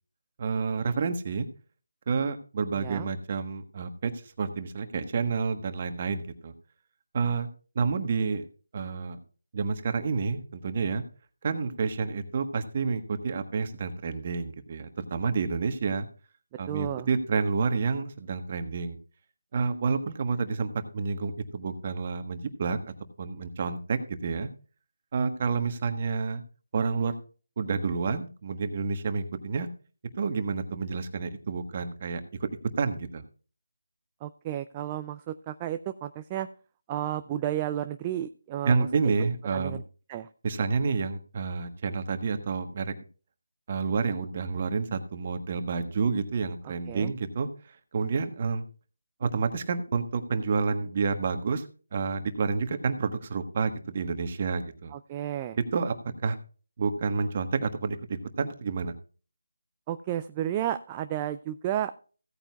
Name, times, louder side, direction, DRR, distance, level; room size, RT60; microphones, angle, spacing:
voice 1, 0.4-1.5 2.1-6.5 7.1-7.5 7.7-8.5 8.7-9.2 9.5-11.0 11.4-16.1 16.6-19.0 19.5-22.8 23.2-24.5 25.1-26.4 26.7-27.2 27.6-29.7 30.2-32.2 32.8-33.2 38.6-39.8 40.4-43.0 43.7-48.6 49.2-51.7 51.9-54.9 55.7-55.9 56.2-56.4 56.8-58.9, right 5 dB, 35° right, 9 dB, 1.3 m, -29 dB
voice 2, 2.7-3.1 16.7-17.1 34.2-36.5 36.9-38.8 39.0-39.1 39.5-39.8 40.1-40.3 46.9-47.1 54.9-55.6 59.9-61.9, right 12 dB, 20° right, 9 dB, 0.4 m, -32 dB
16.0 x 8.9 x 2.4 m, 0.38 s
figure-of-eight pair, 165°, 0 cm